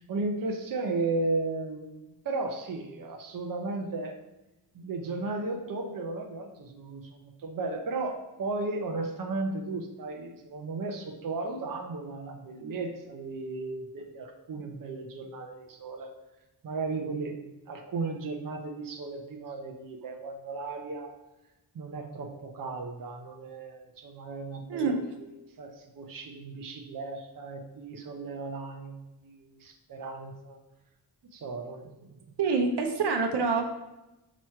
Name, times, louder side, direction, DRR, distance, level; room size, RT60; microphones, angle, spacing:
voice 1, 0.0-2.0 2.2-4.2 4.7-16.1 16.6-21.1 21.7-25.3 25.6-30.6 31.3-32.2, right 3 dB, 55° right, 3 dB, 0.7 m, -35 dB
voice 2, 32.4-33.6, right 4 dB, 85° right, 3 dB, 0.9 m, -26 dB
6.1 x 3.0 x 5.5 m, 0.97 s
wide cardioid pair, 160°, 40 cm